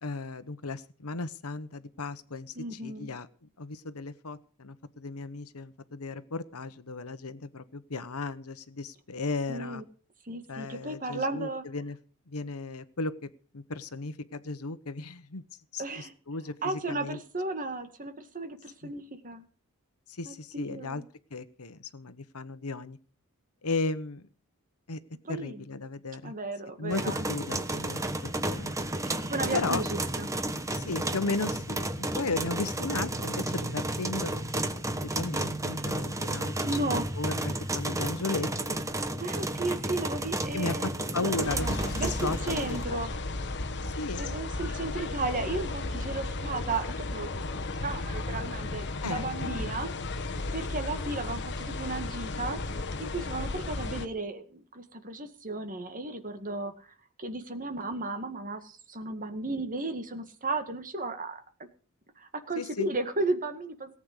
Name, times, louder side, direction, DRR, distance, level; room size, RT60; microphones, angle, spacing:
voice 1, 0.0-3.3 3.6-9.8 10.5-12.0 12.3-15.4 15.7-17.2 18.8-18.9 20.1-21.0 21.3-23.0 23.6-24.3 24.9-25.0 25.3-26.3 26.8-27.0 27.3-28.8 29.5-29.8 30.7-31.9 32.1-34.6 34.9-36.5 36.8-38.8 40.5-42.8 43.8-44.3 49.0-49.7 62.6-62.9, left 3 dB, 75° left, 12 dB, 1.1 m, -35 dB
voice 2, 2.6-3.1 9.5-9.8 10.3-11.6 15.8-16.1 16.6-19.5 20.2-21.0 25.2-25.6 26.2-27.2 29.1-30.3 36.5-37.1 39.2-43.1 44.1-47.3 47.7-49.9 50.5-52.6 53.0-56.7 57.2-61.4 62.2-64.0, right 2 dB, 40° right, 7 dB, 2.0 m, -34 dB
sound 1, 26.9-42.8, right 1 dB, 15° right, 1.1 m, -32 dB
sound 2, 41.4-54.0, left 2 dB, 55° left, 1.3 m, -34 dB
18.5 x 8.7 x 6.7 m, 0.41 s
head